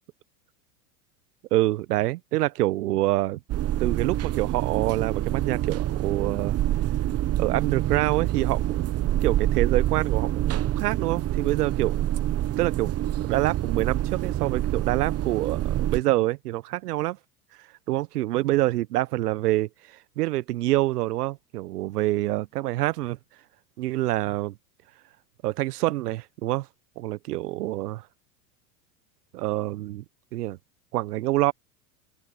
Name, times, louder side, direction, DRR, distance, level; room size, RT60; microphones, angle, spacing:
voice 1, 1.5-3.4 3.8-6.5 7.4-12.0 12.6-12.9 13.2-17.2 17.9-23.2 23.8-24.5 25.4-26.7 27.0-28.0 29.3-30.0 30.3-30.6 30.9-31.5, right 17 dB, 75° right, 1.2 m, -26 dB
sound 1, 3.5-16.0, right 13 dB, 30° right, 1.0 m, -26 dB
open air
hypercardioid pair, 95°, 48 cm